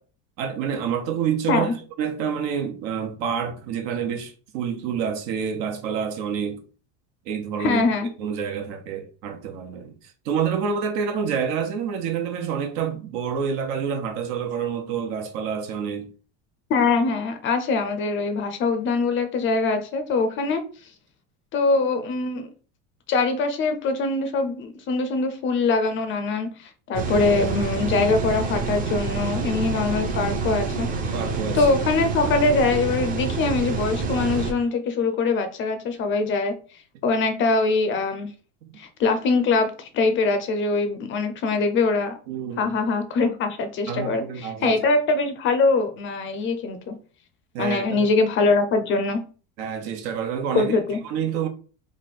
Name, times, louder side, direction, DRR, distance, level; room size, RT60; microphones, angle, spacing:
voice 1, 0.4-6.6 7.2-7.8 8.2-16.1 27.2-27.6 31.1-31.7 38.6-38.7 42.3-42.7 43.9-44.8 47.5-48.1 49.6-50.8 51.0-51.5, right 7 dB, 65° right, 1.1 m, -28 dB
voice 2, 7.6-8.1 16.7-20.6 21.5-22.5 23.1-30.9 31.5-36.5 37.0-38.3 38.8-42.1 42.6-46.9 47.6-49.2 50.5-51.0, left 3 dB, 35° left, 0.5 m, -23 dB
sound 1, 26.9-34.5, right 4 dB, 25° right, 0.7 m, -27 dB
3.4 x 2.5 x 4.1 m
cardioid pair, 155°, 36 cm